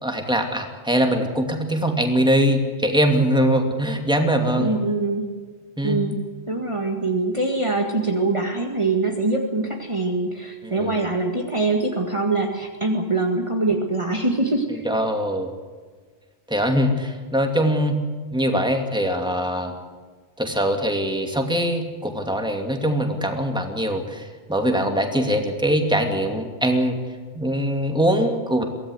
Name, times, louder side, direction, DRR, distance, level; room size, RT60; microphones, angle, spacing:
voice 1, 0.0-4.8 5.8-6.0 10.6-11.0 14.7-15.5 16.5-18.0 18.3-19.7 20.4-27.0 27.3-28.6, equal, 5° right, 3 dB, 2.6 m, -22 dB
voice 2, 4.5-5.3 5.8-6.2 6.5-14.8, right 2 dB, 30° right, 1 dB, 2.0 m, -23 dB
24.0 x 17.5 x 8.1 m, 1.5 s
omnidirectional pair, 1.1 m